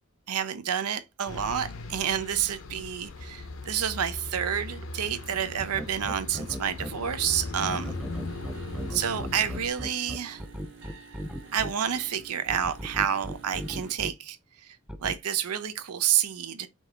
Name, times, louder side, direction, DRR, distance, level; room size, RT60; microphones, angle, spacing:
voice 1, 0.3-7.9 8.9-10.4 11.5-14.4 14.6-16.7, right 9 dB, 90° right, 0.6 m, -29 dB
sound 1, 1.3-9.7, left 3 dB, 60° left, 0.6 m, -39 dB
sound 2, 5.6-6.9 7.7-11.7 12.5-14.1 14.9-15.1, equal, 5° right, 0.3 m, -36 dB
sound 3, 7.5-13.9, right 5 dB, 65° right, 1.4 m, -49 dB
5.3 x 2.4 x 3.2 m
head